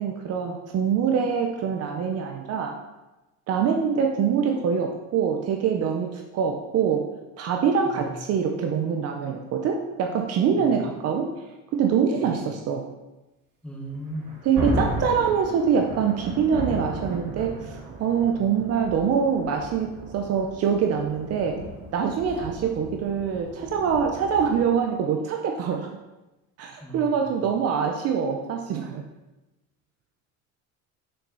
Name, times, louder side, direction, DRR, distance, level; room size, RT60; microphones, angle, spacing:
voice 1, 0.0-2.7 3.5-7.0 7.4-11.3 11.7-12.8 14.4-21.6 21.9-25.9 26.6-29.0, right 6 dB, 50° right, 3 dB, 0.8 m, -24 dB
voice 2, 10.5-10.8 12.2-12.3 13.6-14.4 18.3-18.6 26.8-27.3, right 1 dB, 5° left, -4 dB, 1.7 m, -38 dB
Thunder, 13.9-24.7, right 2 dB, 70° right, 2.3 m, -35 dB
6.6 x 5.9 x 4.0 m, 1.0 s
cardioid pair, 155°, 33 cm